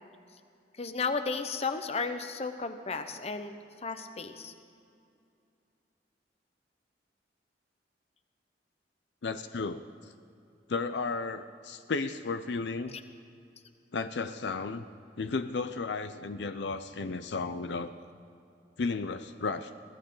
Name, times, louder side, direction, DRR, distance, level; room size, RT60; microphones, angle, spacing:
voice 1, 0.8-3.5 3.8-4.5 12.9-13.0, left 4 dB, 35° left, 9 dB, 0.9 m, -34 dB
voice 2, 9.2-9.8 10.7-13.0 13.9-14.8 15.2-17.9 18.8-19.7, left 4 dB, 75° left, 10 dB, 0.6 m, -33 dB
22.0 x 16.5 x 3.9 m, 2.5 s
head